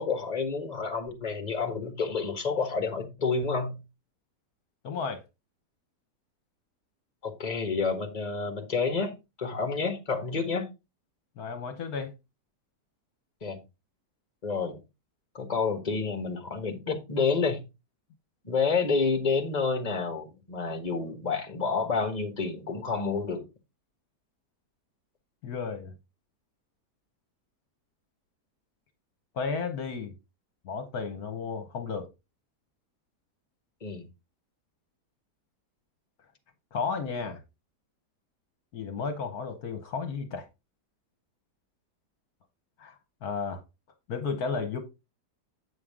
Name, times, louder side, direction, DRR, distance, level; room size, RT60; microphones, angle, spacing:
voice 1, 0.0-3.7 7.2-9.1 9.4-10.7 13.4-13.6 14.4-14.8 15.3-17.6 18.4-23.4 33.8-34.0, left 4 dB, 25° left, 1.7 m, -29 dB
voice 2, 4.8-5.2 11.4-12.1 25.4-25.9 29.3-30.1 30.6-32.1 36.7-37.4 38.7-40.5 42.8-42.9 43.2-43.6 44.1-44.8, left 5 dB, 65° left, 1.5 m, -33 dB
8.5 x 6.4 x 3.7 m
omnidirectional pair, 1.8 m